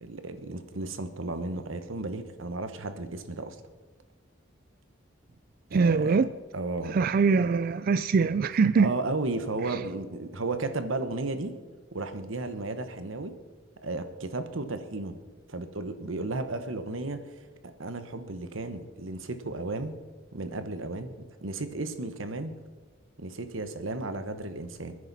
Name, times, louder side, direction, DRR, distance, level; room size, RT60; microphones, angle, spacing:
voice 1, 0.0-3.6 5.7-6.2 6.5-7.0 8.7-11.6 11.9-13.3 13.8-15.2 15.5-17.2 17.6-19.9 20.3-21.1 21.4-22.5 23.2-25.0, right 2 dB, 90° right, 1.1 m, -34 dB
voice 2, 5.7-6.3 6.9-8.9 9.7-9.8, right 5 dB, 50° right, 0.3 m, -23 dB
27.5 x 9.8 x 4.1 m
head